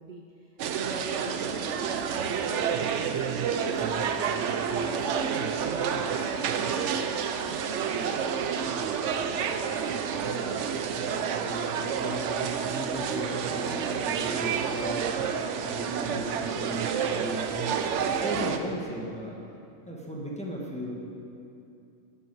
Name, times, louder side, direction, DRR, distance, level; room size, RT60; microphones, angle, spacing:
voice 1, 0.0-4.1 4.5-5.9 6.1-8.7, right 4 dB, 50° right, 2 dB, 0.6 m, -43 dB
sound 1, 0.6-18.6, right 7 dB, 70° right, 0.9 m, -29 dB
voice 2, 10.3-19.4 19.9-20.9, right 1 dB, 5° left, -3 dB, 1.3 m, -37 dB
12.0 x 7.8 x 4.6 m, 2.6 s
omnidirectional pair, 1.3 m